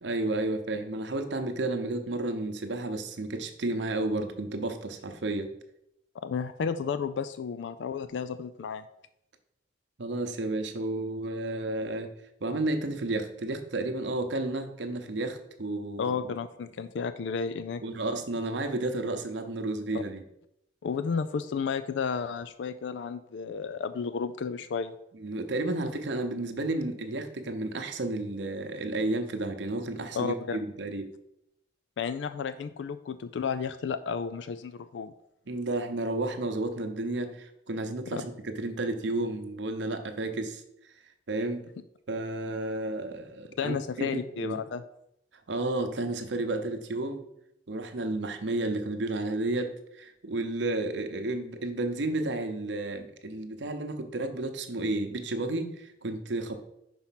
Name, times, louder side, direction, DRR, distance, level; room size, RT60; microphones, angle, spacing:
voice 1, 0.0-5.5 10.0-12.1 12.4-16.3 17.8-20.2 25.2-31.1 35.5-40.6 41.3-41.6 42.1-44.6 45.5-47.2 47.7-56.6, right 2 dB, 75° right, 7 dB, 0.8 m, -32 dB
voice 2, 6.2-8.8 16.0-17.8 19.9-20.0 20.8-24.9 30.1-30.6 32.0-35.1 38.1-38.2 43.6-44.8, left 6 dB, 75° left, 12 dB, 0.4 m, -32 dB
5.5 x 4.5 x 5.7 m, 0.80 s
head